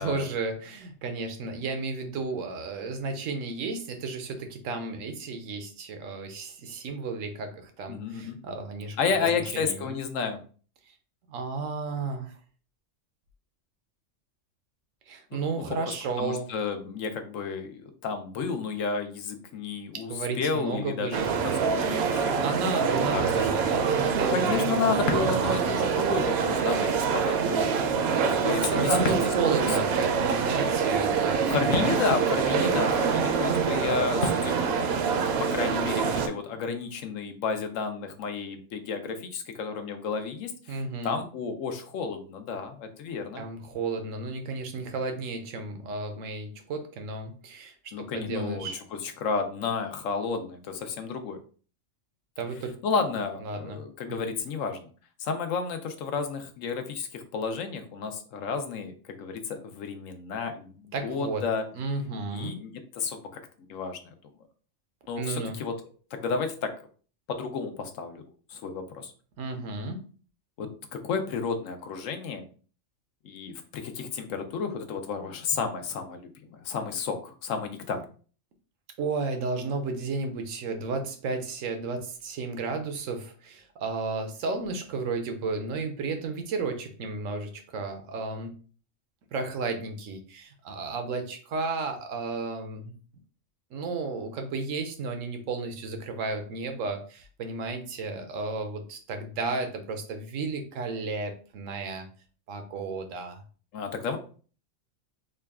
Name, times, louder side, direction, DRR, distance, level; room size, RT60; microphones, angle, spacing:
voice 1, 0.0-9.9 11.3-12.3 15.1-16.5 19.9-25.2 28.7-32.0 40.7-41.2 43.4-48.8 52.4-52.8 53.4-53.8 54.2-54.3 60.9-61.4 61.7-62.6 65.2-65.6 69.4-70.0 79.0-88.5 89.3-92.9 93.7-102.1 102.5-103.4, right 3 dB, 90° right, 6 dB, 1.1 m, -33 dB
voice 2, 7.9-8.4 9.0-10.4 15.3-15.6 16.2-21.2 21.6-22.4 23.1-23.7 24.3-27.7 28.1-29.0 29.9-30.1 31.4-34.8 35.4-43.4 47.9-51.4 52.8-54.9 55.2-61.6 62.3-63.4 63.7-64.1 65.1-65.7 66.2-66.9 67.3-68.2 68.5-69.1 70.6-72.4 73.2-78.0 103.7-104.2, left 5 dB, 90° left, 6 dB, 1.0 m, -32 dB
sound 1, 21.1-36.3, right 6 dB, 65° right, 0.7 m, -25 dB
Ocean, 25.0-36.1, left 4 dB, 50° left, 0.7 m, -39 dB
3.8 x 2.2 x 3.5 m, 0.40 s
omnidirectional pair, 1.3 m